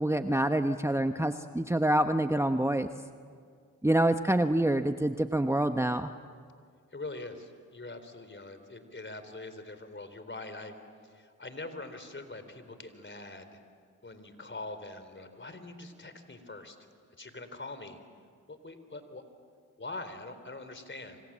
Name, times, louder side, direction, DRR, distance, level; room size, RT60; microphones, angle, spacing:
voice 1, 0.0-2.9 3.8-6.1, right 1 dB, 10° right, 8 dB, 1.0 m, -26 dB
voice 2, 6.9-10.8 11.0-13.6 14.0-16.8 17.2-18.0 18.5-19.2 19.8-21.2, left 2 dB, 35° left, 10 dB, 4.0 m, -43 dB
28.5 x 25.5 x 7.5 m, 2.1 s
supercardioid pair, 40°, 32 cm